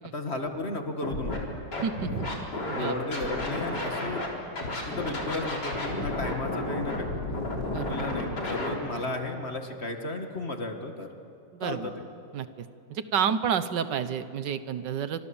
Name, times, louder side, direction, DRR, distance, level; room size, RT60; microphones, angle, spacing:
voice 1, 0.0-1.6 2.7-4.2 4.8-7.1 7.9-11.1 11.6-12.0, left 2 dB, 40° left, 5 dB, 2.1 m, -34 dB
Scratching (performance technique), 1.0-1.4 1.7-4.3 4.6-8.7, left 2 dB, 70° left, 4.6 m, -32 dB
voice 2, 1.8-2.3 2.7-3.0 7.6-8.0 11.5-11.9 12.3-15.2, right 8 dB, 80° right, 12 dB, 1.7 m, -30 dB
29.0 x 26.0 x 7.2 m, 2.5 s
omnidirectional pair, 1.8 m